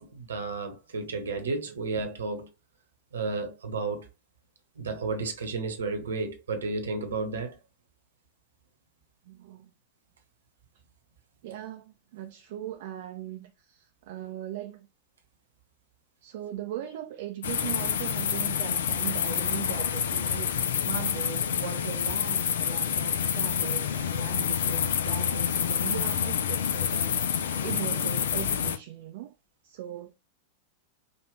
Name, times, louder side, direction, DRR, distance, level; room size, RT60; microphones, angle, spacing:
voice 1, 0.0-2.5 3.1-4.1 4.8-7.6, right 3 dB, 70° right, 1.1 m, -32 dB
voice 2, 9.2-9.7 11.4-14.9 16.2-29.3 29.6-30.1, right 12 dB, 50° right, 0.5 m, -39 dB
sound 1, 17.4-28.8, left 8 dB, 60° left, 0.5 m, -28 dB
5.2 x 2.5 x 3.2 m
figure-of-eight pair, 90°, 0 cm